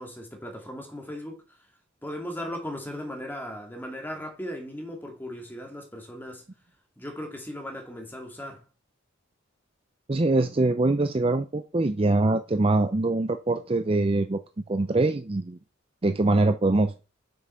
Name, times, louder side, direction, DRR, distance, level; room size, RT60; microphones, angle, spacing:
voice 1, 0.0-1.4 2.0-6.5 7.0-8.7, equal, 10° left, 2.3 m, -37 dB
voice 2, 10.1-14.4 14.7-15.6 16.0-16.9, right 2 dB, 25° right, 0.5 m, -23 dB
7.7 x 6.1 x 5.6 m
head